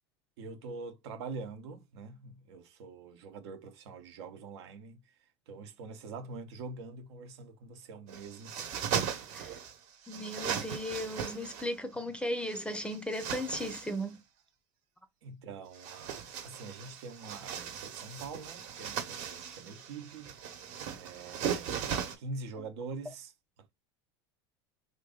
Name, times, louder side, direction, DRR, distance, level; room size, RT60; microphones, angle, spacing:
voice 1, 0.4-5.0 5.5-8.8 15.2-20.4 21.0-23.3, right 4 dB, 75° right, 0.9 m, -44 dB
sound 1, 8.1-9.7 10.1-11.7 12.4-14.0 15.7-22.2, right 8 dB, 55° right, 1.1 m, -38 dB
voice 2, 10.1-14.2, equal, 5° left, 0.6 m, -36 dB
3.0 x 2.5 x 3.8 m
hypercardioid pair, 100°, 14 cm